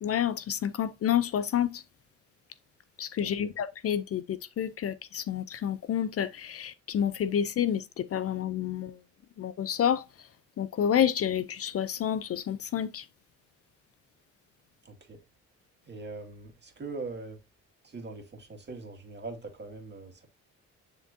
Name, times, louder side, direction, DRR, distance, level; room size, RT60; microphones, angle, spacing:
voice 1, 0.0-1.8 3.0-9.0 9.4-10.0 10.6-13.1, left 9 dB, 50° left, 0.5 m, -29 dB
voice 2, 14.8-15.2 15.9-17.4 17.8-20.3, right 3 dB, 35° right, 2.1 m, -41 dB
9.9 x 3.5 x 2.7 m
cardioid pair, 90°, 30 cm